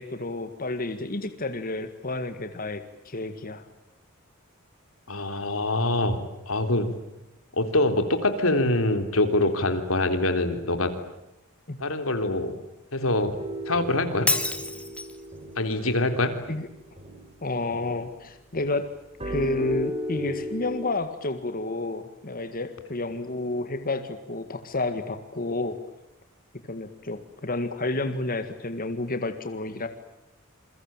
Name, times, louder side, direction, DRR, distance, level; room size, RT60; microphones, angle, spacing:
voice 1, 0.0-3.6 11.7-11.8 16.5-16.7 17.4-18.9 19.2-25.8 26.7-29.9, left 2 dB, 45° left, 8 dB, 1.9 m, -30 dB
voice 2, 5.1-6.9 7.5-10.9 11.8-12.6 12.9-13.4 13.7-14.3 15.6-16.3, left 2 dB, 90° left, 8 dB, 3.6 m, -24 dB
sound 1, 13.4-18.2 18.5-20.9, equal, 30° right, 5.0 m, -36 dB
Shatter, 14.3-15.3, left 2 dB, 5° left, 2.1 m, -27 dB
28.5 x 23.0 x 9.0 m, 0.91 s
head